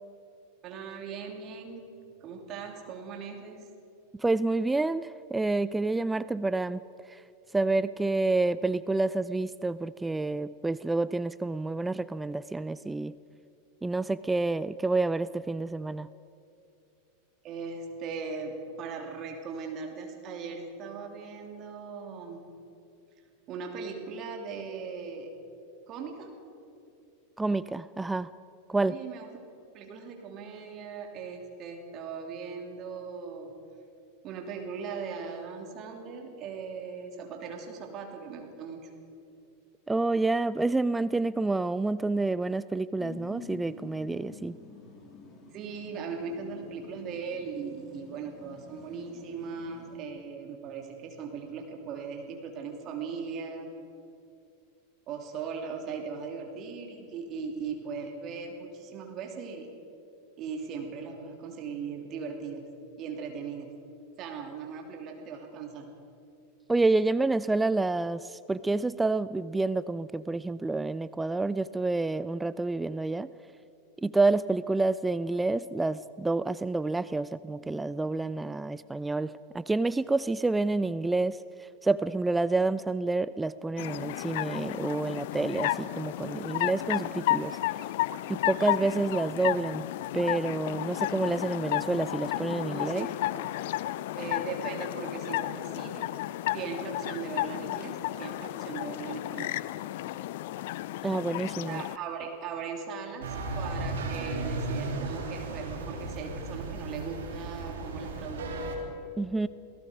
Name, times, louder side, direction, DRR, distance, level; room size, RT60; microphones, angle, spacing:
voice 1, 0.6-1.8 2.2-3.7 17.4-22.4 23.5-25.3 25.9-26.4 28.9-29.3 29.7-33.5 34.2-38.9 45.5-53.7 55.1-59.7 60.4-62.7 63.0-63.7 64.2-65.9 92.7-93.1 94.2-96.1 96.5-99.6 101.6-108.5, right 5 dB, 40° right, 3 dB, 2.9 m, -39 dB
voice 2, 4.2-6.8 7.1-7.2 7.5-13.2 13.8-16.1 27.4-28.3 28.7-29.0 39.9-44.6 66.7-73.3 74.0-87.6 88.3-89.8 90.1-93.1 101.0-101.8 109.2-109.5, right 3 dB, 10° right, 17 dB, 0.4 m, -28 dB
sound 1, 43.0-50.0, left 5 dB, 25° left, 3.5 m, -49 dB
sound 2, 83.8-102.0, left 15 dB, 55° left, 0.5 m, -33 dB
sound 3, 103.2-108.8, right 2 dB, 70° right, 3.3 m, -35 dB
28.5 x 18.0 x 5.1 m, 2.7 s
figure-of-eight pair, 90°, 0 cm